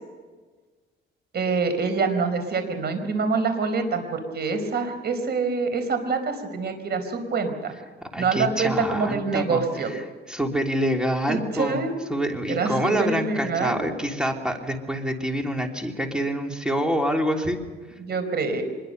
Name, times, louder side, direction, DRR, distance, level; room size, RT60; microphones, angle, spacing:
voice 1, 1.3-7.7 8.2-9.9 11.3-11.9 12.5-13.9 18.0-18.6, right 4 dB, 55° right, 8 dB, 4.7 m, -25 dB
voice 2, 8.1-9.6 10.3-11.8 12.1-17.6, equal, 5° right, 2 dB, 3.2 m, -26 dB
25.5 x 21.5 x 6.8 m, 1.4 s
cardioid pair, 90°, 20 cm